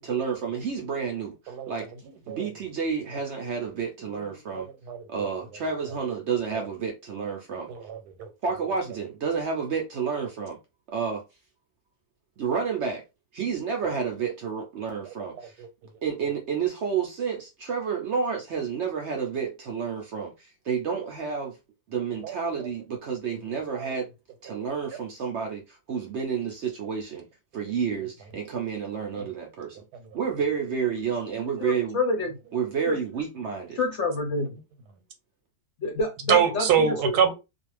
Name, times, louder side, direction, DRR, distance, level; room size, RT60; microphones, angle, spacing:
voice 1, 0.0-1.9 2.3-4.7 5.1-7.7 8.4-10.6 10.9-11.2 12.4-13.0 13.3-15.5 16.0-21.6 21.9-24.1 24.4-27.3 27.5-29.8 30.1-32.0 32.5-33.8, right 6 dB, 65° right, 0.7 m, -30 dB
voice 2, 4.2-5.3 6.5-6.7 7.7-8.3 15.6-15.7 22.2-22.4 36.3-37.3, right 7 dB, 85° right, 1.2 m, -25 dB
voice 3, 31.6-32.4 32.9-33.0 33.7-34.5 35.8-37.2, left 2 dB, 60° left, 0.8 m, -28 dB
2.5 x 2.3 x 3.1 m
omnidirectional pair, 1.7 m